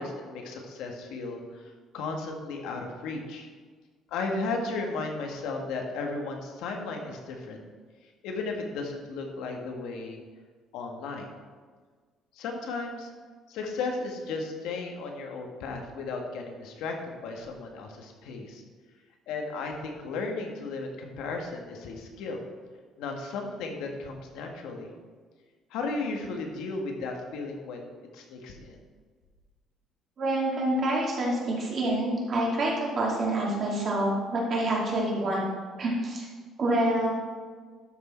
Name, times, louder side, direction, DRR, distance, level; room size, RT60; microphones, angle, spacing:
voice 1, 0.0-3.5 4.1-7.6 8.2-10.2 10.7-11.3 12.3-13.1 13.5-18.6 19.3-22.4 23.0-24.9 25.7-27.9 28.1-28.8, left 3 dB, 85° left, 2 dB, 1.8 m, -35 dB
voice 2, 30.2-35.4 35.8-36.3 36.6-37.1, right 1 dB, 40° right, -3 dB, 2.8 m, -27 dB
12.5 x 6.4 x 4.5 m, 1.5 s
cardioid pair, 160°, 0 cm